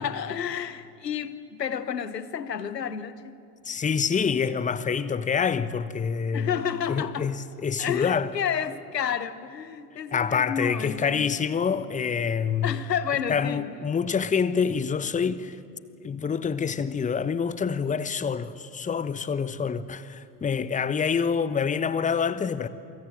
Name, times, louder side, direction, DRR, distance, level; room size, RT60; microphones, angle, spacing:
voice 1, 0.0-3.4 6.3-7.3 7.8-11.3 12.6-13.7, left 8 dB, 80° left, 1.1 m, -30 dB
voice 2, 3.6-6.6 6.9-8.3 10.1-12.8 13.3-15.6 16.0-22.7, left 6 dB, 15° left, 1.1 m, -26 dB
28.0 x 25.0 x 7.7 m
figure-of-eight pair, 70°, 48 cm